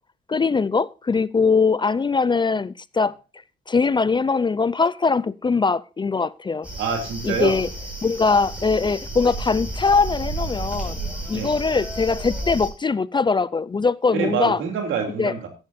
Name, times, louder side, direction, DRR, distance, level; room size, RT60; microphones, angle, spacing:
voice 1, 0.3-3.1 3.7-6.7 7.2-7.7 8.0-11.0 11.3-14.6 15.2-15.3, left 4 dB, 25° left, 0.4 m, -21 dB
sound 1, 6.6-12.7, right 1 dB, 5° right, 5.7 m, -32 dB
voice 2, 6.8-7.6 11.3-11.6 14.1-15.5, right 6 dB, 80° right, 3.0 m, -26 dB
15.0 x 11.5 x 2.6 m
cardioid pair, 90°, 20 cm